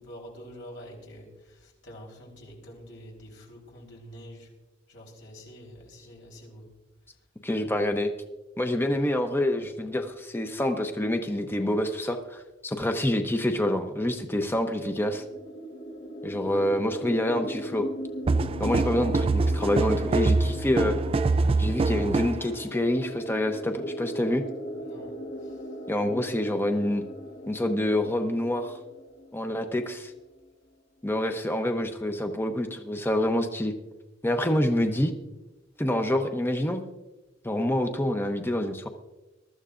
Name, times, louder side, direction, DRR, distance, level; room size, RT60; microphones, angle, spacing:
voice 1, 0.0-4.5 4.9-6.7 16.5-16.7 24.8-25.8, equal, 75° left, -1 dB, 3.9 m, -47 dB
voice 2, 7.4-8.1 8.6-15.2 16.2-17.8 18.6-20.9 21.6-24.4 25.9-27.0 27.5-28.8 29.3-30.1 31.0-33.7 34.2-35.1 35.8-36.8 37.4-38.9, left 1 dB, 10° left, 5 dB, 0.7 m, -27 dB
sound 1, 14.3-29.9, equal, 60° left, 1.4 m, -39 dB
sound 2, 18.3-22.5, right 3 dB, 30° right, 0.4 m, -24 dB
21.5 x 13.0 x 2.5 m, 1.1 s
head